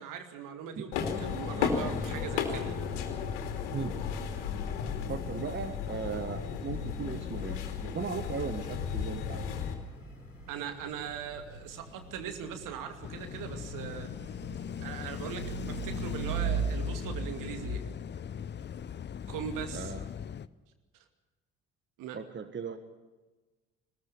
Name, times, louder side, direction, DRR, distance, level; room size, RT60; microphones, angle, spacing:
voice 1, 0.0-2.8 10.5-14.4 14.8-17.8 19.3-19.9 22.0-22.2, right 8 dB, 60° right, 7 dB, 2.5 m, -40 dB
sound 1, 0.9-9.7, left 6 dB, 65° left, 2.9 m, -34 dB
voice 2, 5.1-9.4 19.7-20.0 22.1-22.8, right 5 dB, 30° right, 10 dB, 1.7 m, -37 dB
sound 2, 9.7-17.8, right 5 dB, 90° left, 2.4 m, -39 dB
sound 3, 13.0-20.5, left 8 dB, 30° left, 0.7 m, -39 dB
20.5 x 20.0 x 7.0 m, 1.2 s
figure-of-eight pair, 50°, 37 cm